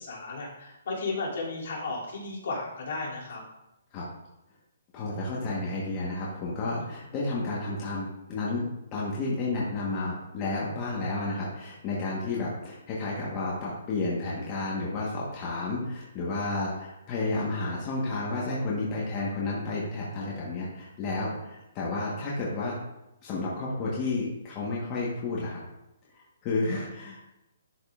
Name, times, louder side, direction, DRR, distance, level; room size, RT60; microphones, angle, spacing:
voice 1, 0.0-3.4, left 3 dB, 60° left, -4 dB, 2.6 m, -34 dB
voice 2, 4.9-22.8 23.2-25.6 26.1-27.2, left 2 dB, 25° left, -5 dB, 1.2 m, -31 dB
11.0 x 5.2 x 2.4 m, 0.90 s
hypercardioid pair, 160°, 0 cm